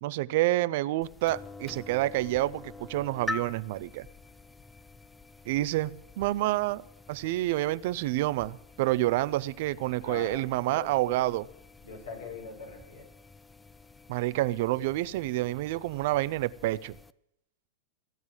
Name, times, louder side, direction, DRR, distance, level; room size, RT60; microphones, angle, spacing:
voice 1, 0.0-4.1 5.5-6.8 7.1-11.5 14.1-17.0, right 16 dB, 55° right, 0.5 m, -28 dB
sound 1, 1.0-17.1, left 3 dB, 10° left, 0.5 m, -46 dB
voice 2, 10.0-11.3 11.8-13.1, left 4 dB, 75° left, 5.9 m, -42 dB
16.0 x 9.4 x 7.6 m
hypercardioid pair, 100°, 0 cm